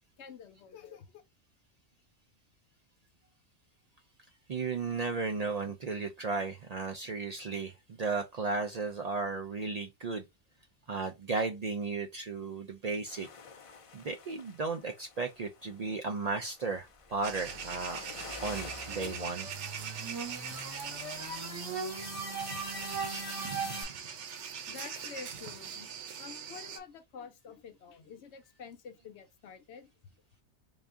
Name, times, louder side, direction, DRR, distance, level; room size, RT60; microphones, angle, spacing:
voice 1, 0.2-1.1 24.7-25.9 26.2-30.1, left 6 dB, 75° left, 1.0 m, -48 dB
voice 2, 4.5-10.3 10.9-13.3 13.9-18.0 18.4-19.5, right 4 dB, 60° right, 0.4 m, -35 dB
sound 1, 13.1-21.3, left 5 dB, 55° left, 0.3 m, -51 dB
sound 2, 17.2-26.8, right 7 dB, 90° right, 1.0 m, -42 dB
sound 3, 17.6-23.8, right 3 dB, 15° right, 1.2 m, -39 dB
3.7 x 2.4 x 3.5 m
omnidirectional pair, 1.2 m